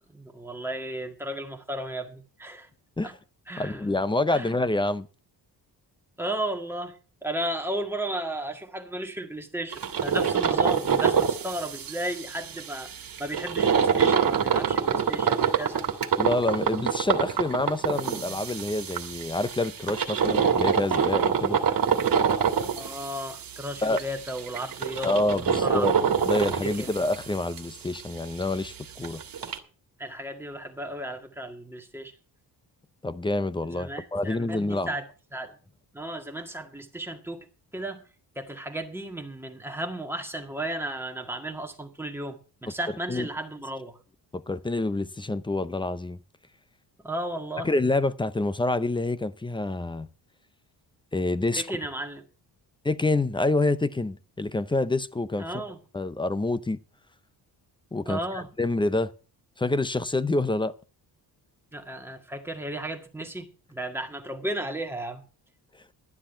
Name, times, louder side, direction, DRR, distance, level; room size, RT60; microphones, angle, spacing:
voice 1, 0.1-2.7 3.0-3.1 3.5-3.9 4.3-4.5 6.2-12.9 13.2-15.8 22.3-22.5 22.8-25.9 26.6-26.9 30.0-32.1 33.7-35.0 35.3-35.6 35.9-37.5 37.7-38.0 38.4-44.0 47.0-47.7 51.6-52.2 55.4-55.8 58.1-58.5 61.7-65.2, right 1 dB, 5° right, 1.9 m, -34 dB
voice 2, 3.6-5.1 16.2-21.6 23.8-24.0 25.0-25.9 26.2-29.2 33.0-34.9 43.1-43.3 44.3-46.2 47.6-50.1 51.1-51.6 52.8-55.6 55.9-56.8 57.9-59.1 59.6-60.7, left 2 dB, 10° left, 0.6 m, -27 dB
sound 1, 9.7-27.6 27.9-28.0 28.4-28.5 28.8-28.9 29.0-29.6, right 7 dB, 55° right, 1.9 m, -26 dB
12.0 x 10.0 x 5.6 m
cardioid pair, 145°, 41 cm